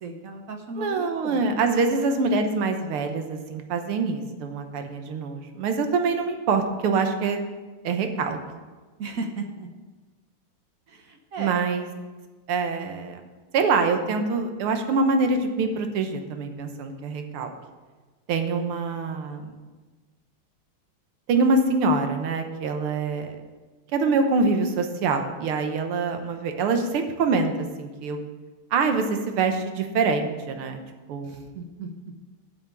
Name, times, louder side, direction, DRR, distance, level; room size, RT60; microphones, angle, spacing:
voice 1, 0.0-1.4 1.7-1.9 9.0-9.7 10.9-11.6 31.2-31.9, right 3 dB, 55° right, 4 dB, 1.0 m, -35 dB
voice 2, 0.8-7.4 7.8-8.4 11.4-11.9 12.5-13.2 13.5-17.5 18.3-19.5 21.3-23.4 23.9-28.2 28.7-30.8 31.1-31.4, right 4 dB, 90° right, 6 dB, 1.9 m, -25 dB
8.8 x 6.2 x 8.1 m, 1.3 s
omnidirectional pair, 2.3 m